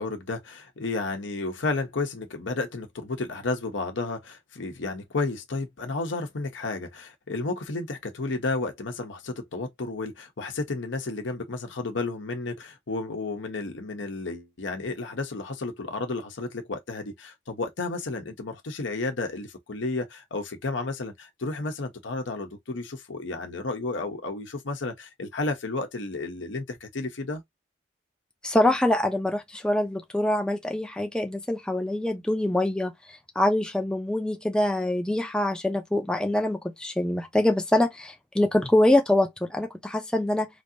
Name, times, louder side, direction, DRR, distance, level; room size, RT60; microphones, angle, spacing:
voice 1, 0.0-27.4, left 3 dB, 75° left, 0.8 m, -32 dB
voice 2, 28.4-32.9 33.4-40.5, left 1 dB, 5° left, 0.5 m, -24 dB
3.2 x 2.8 x 2.5 m
head